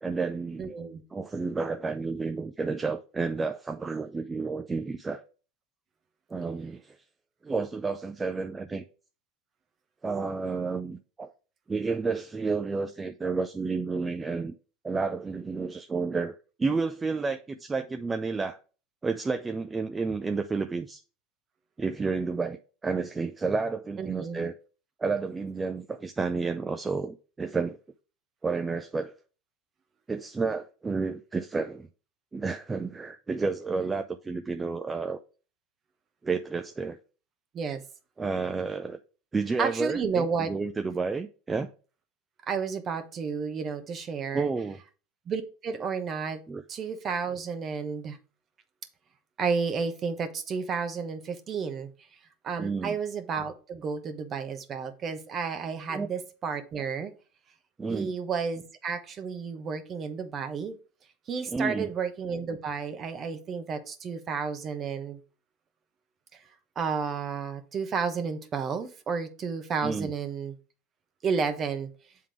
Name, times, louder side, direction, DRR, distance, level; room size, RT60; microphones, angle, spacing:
voice 1, 0.0-0.7 1.1-5.2 6.3-7.0 7.4-8.8 10.0-11.3 11.7-14.5 14.8-18.6 19.0-21.0 21.8-24.5 25.0-27.8 28.4-29.1 30.1-31.9 32.3-35.2 36.2-37.0 38.2-39.0 39.3-41.7 44.3-44.8 46.5-46.6 52.6-53.0 55.9-56.1 57.8-58.1 61.5-61.9 69.8-70.1, right 4 dB, 15° right, 0.4 m, -31 dB
voice 2, 0.6-1.0 24.0-24.4 37.5-37.8 39.6-40.5 42.5-44.5 45.3-46.4 46.7-48.2 49.4-51.9 52.4-57.1 57.9-60.8 61.3-65.2 66.3-66.4 66.8-70.6 71.2-71.9, right 5 dB, 35° right, 1.1 m, -31 dB
7.6 x 3.7 x 4.8 m
supercardioid pair, 125°, 0 cm